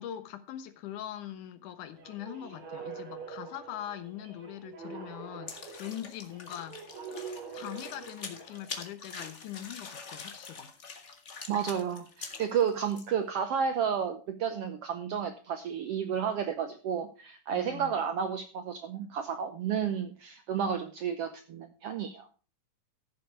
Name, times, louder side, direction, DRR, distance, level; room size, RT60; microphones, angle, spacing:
voice 1, 0.0-6.8 7.5-10.7 17.5-18.0, left 11 dB, 75° left, 2.5 m, -42 dB
sound 1, 1.9-8.8, right 6 dB, 55° right, 4.3 m, -45 dB
sound 2, 5.5-13.1, left 4 dB, 60° left, 0.7 m, -44 dB
voice 2, 11.5-22.3, right 7 dB, 75° right, 1.4 m, -31 dB
14.0 x 7.3 x 4.6 m
omnidirectional pair, 3.6 m